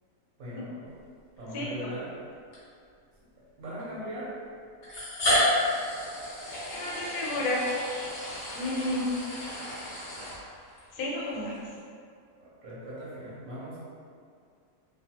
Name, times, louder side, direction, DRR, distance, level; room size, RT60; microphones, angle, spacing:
voice 1, 0.4-0.9 1.4-2.1 3.6-4.3 12.4-13.8, equal, 60° right, -9 dB, 1.0 m, -39 dB
sound 1, 1.4-1.5 2.5-2.6 3.8-3.9 4.8-10.8, left 1 dB, 50° left, 0.8 m, -31 dB
voice 2, 6.7-7.6 8.5-9.0 10.9-11.5, left 1 dB, 75° left, -4 dB, 1.2 m, -31 dB
2.6 x 2.4 x 2.8 m, 2.2 s
omnidirectional pair, 1.8 m